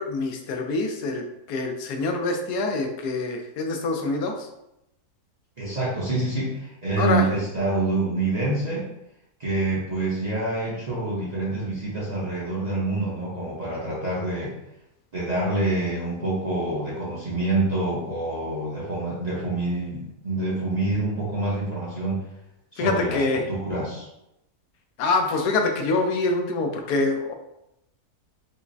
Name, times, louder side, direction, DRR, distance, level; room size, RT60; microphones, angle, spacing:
voice 1, 0.0-4.5 7.0-7.3 22.8-23.4 25.0-27.3, left 3 dB, 85° left, 4 dB, 1.1 m, -25 dB
voice 2, 5.6-8.9 9.4-14.5 15.1-22.2 22.7-24.1, right 2 dB, 40° right, -7 dB, 0.6 m, -26 dB
5.5 x 2.0 x 2.6 m, 0.85 s
omnidirectional pair, 1.6 m